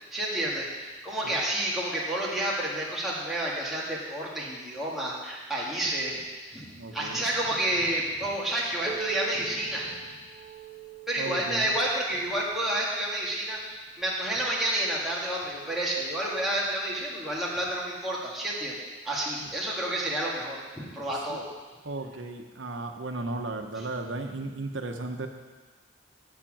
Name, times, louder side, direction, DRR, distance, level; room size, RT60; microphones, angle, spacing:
voice 1, 0.1-6.2 6.5-6.7 6.9-10.0 11.1-13.6 14.0-18.8 19.0-21.5, right 1 dB, ahead, -6 dB, 1.9 m, -30 dB
voice 2, 6.8-7.3 11.2-11.7 19.4-19.5 21.3-21.4 21.8-25.3, right 2 dB, 75° right, 5 dB, 1.0 m, -35 dB
Piano, 8.8-14.2 15.0-15.1 15.6-15.7 16.5-16.6 17.6-17.7, right 8 dB, 30° right, 0.8 m, -43 dB
8.1 x 7.4 x 7.4 m, 1.3 s
head